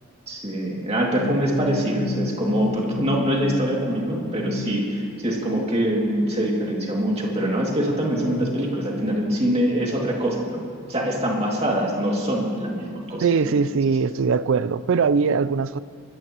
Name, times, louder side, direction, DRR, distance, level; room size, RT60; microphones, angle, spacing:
voice 1, 0.3-10.6 10.9-13.5, right 1 dB, 30° right, 2.4 m, -24 dB
sound 1, 1.2-9.2, left 3 dB, 40° left, 0.4 m, -33 dB
voice 2, 13.2-15.8, right 5 dB, 60° right, 0.4 m, -21 dB
22.5 x 14.5 x 3.0 m
head